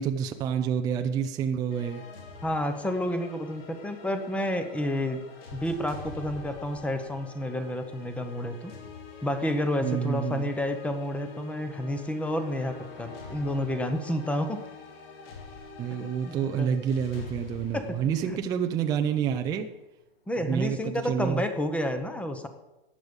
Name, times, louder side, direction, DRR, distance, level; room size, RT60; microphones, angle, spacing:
voice 1, 0.0-2.0 9.8-10.5 15.8-19.7 20.4-21.4, right 8 dB, 10° right, 0.4 m, -28 dB
sound 1, 1.7-19.3, left 4 dB, 65° left, 3.5 m, -46 dB
voice 2, 2.4-5.2 5.5-8.7 9.2-14.6 16.0-16.8 17.7-18.0 18.3-18.4 20.3-22.5, left 1 dB, 5° left, 0.8 m, -30 dB
14.5 x 9.6 x 5.2 m
supercardioid pair, 155°, 31 cm